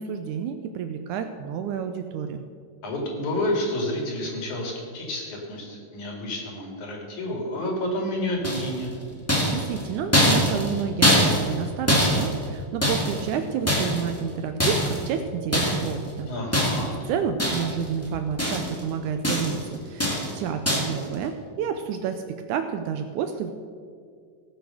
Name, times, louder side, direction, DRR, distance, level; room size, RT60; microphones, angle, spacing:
voice 1, 0.0-2.4 9.4-16.3 17.1-23.5, right 7 dB, 80° right, 7 dB, 1.9 m, -30 dB
voice 2, 2.8-8.9 16.2-16.9, left 1 dB, 60° left, 0 dB, 3.5 m, -29 dB
sound 1, 8.4-8.9 9.3-13.3 13.7-14.2 14.6-15.1 15.5-15.9 16.5-17.0 17.4-17.9 18.1-18.8 19.2-19.6 20.0-20.4 20.6-21.0, equal, 10° left, 1.0 m, -23 dB
17.0 x 6.8 x 6.4 m, 2.2 s
omnidirectional pair, 4.0 m